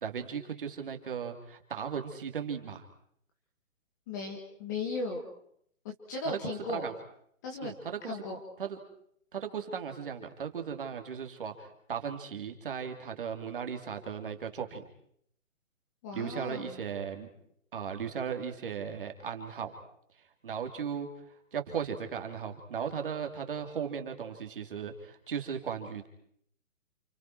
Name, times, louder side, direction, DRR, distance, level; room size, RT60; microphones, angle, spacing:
voice 1, 0.0-2.8 6.2-6.9 7.6-8.2 8.6-8.8 9.3-14.9 16.1-17.3 17.7-19.7 20.1-26.1, right 7 dB, 40° right, 5 dB, 2.8 m, -37 dB
voice 2, 4.1-5.2 5.8-6.9 7.4-7.7 8.1-8.4 16.0-16.8, left 3 dB, 15° left, 2 dB, 1.8 m, -36 dB
29.0 x 29.0 x 4.6 m, 0.68 s
hypercardioid pair, 180°, 40 cm